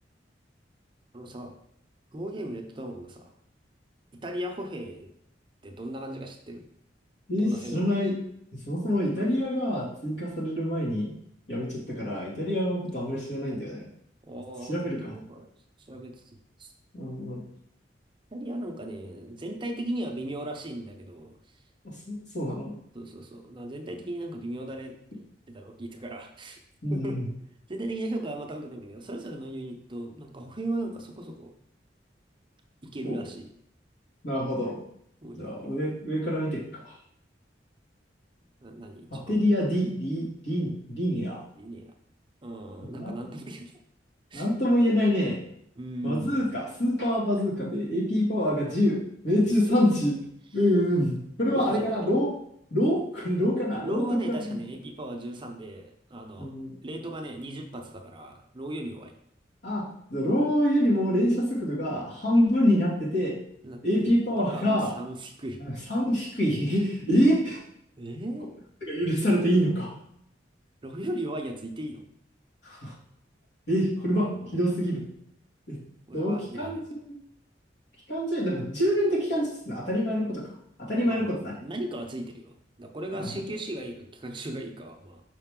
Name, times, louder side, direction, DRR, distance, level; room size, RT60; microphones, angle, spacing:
voice 1, 1.1-1.6 2.1-3.3 4.1-5.1 5.6-6.6 7.4-7.8 14.2-15.5 15.8-16.7 18.3-21.4 22.9-26.6 26.9-27.2 27.7-31.5 32.8-33.5 35.2-35.6 38.6-39.5 41.6-41.9 42.4-43.7 44.3-44.5 45.8-46.4 49.7-50.0 51.5-51.9 53.8-56.5 56.8-59.1 63.6-65.6 66.7-66.8 68.0-68.5 70.8-72.0 74.4-74.6 76.1-76.8 81.0-85.2, right 1 dB, 25° right, 3 dB, 0.6 m, -37 dB
voice 2, 7.3-8.2 8.7-11.1 11.5-13.9 14.7-15.1 16.9-17.4 21.8-22.7 26.8-27.3 33.0-33.2 34.2-34.8 35.4-36.9 39.1-41.4 43.0-43.1 44.3-45.4 46.0-50.1 50.5-52.3 52.7-54.6 56.4-56.7 59.6-63.3 63.8-64.9 65.6-67.6 68.9-69.9 72.6-72.9 73.7-75.0 75.7-75.8 76.1-76.8 78.1-80.5 80.8-81.5 83.1-83.3, equal, 75° left, -5 dB, 2.3 m, -26 dB
5.6 x 5.0 x 3.7 m, 0.73 s
head